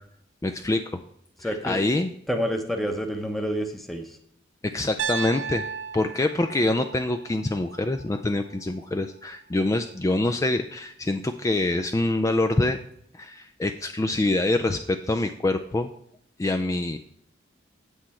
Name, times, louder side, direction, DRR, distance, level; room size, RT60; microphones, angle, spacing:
voice 1, 0.4-1.0 1.4-2.1 4.6-5.6 5.9-12.8 13.1-15.9 16.4-17.0, left 2 dB, 15° left, 7 dB, 0.3 m, -25 dB
voice 2, 1.4-1.8 2.3-4.2, equal, ahead, 3 dB, 0.8 m, -28 dB
Piano, 5.0-9.1, right 6 dB, 65° right, 0.6 m, -35 dB
8.2 x 7.5 x 4.3 m, 0.69 s
head